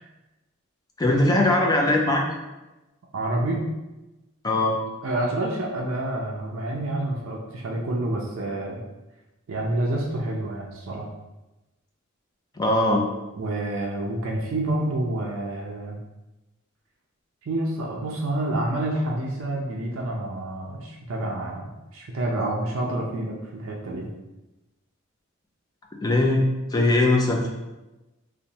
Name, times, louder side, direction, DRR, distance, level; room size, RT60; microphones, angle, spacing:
voice 1, 1.0-2.2 4.4-4.8 12.6-13.0 26.0-26.5 26.7-27.5, left 2 dB, 20° left, 0 dB, 0.3 m, -20 dB
voice 2, 3.1-3.6 5.0-8.8 9.5-11.1 13.4-16.0 17.4-24.1 27.4-27.5, right 1 dB, 70° right, -1 dB, 0.4 m, -28 dB
2.8 x 2.1 x 2.6 m, 1.0 s
head